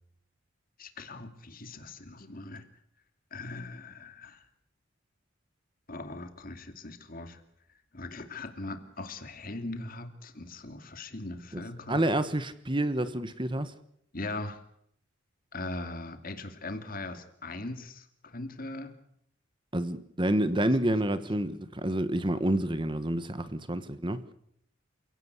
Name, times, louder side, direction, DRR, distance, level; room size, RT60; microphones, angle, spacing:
voice 1, 0.8-2.6 3.3-4.4 5.9-7.4 7.9-12.1 14.1-14.6 15.5-18.9, left 2 dB, 45° left, 8 dB, 2.6 m, -40 dB
voice 2, 11.9-13.7 19.7-24.3, right 1 dB, 25° right, 12 dB, 1.3 m, -28 dB
28.5 x 17.0 x 8.3 m, 0.73 s
head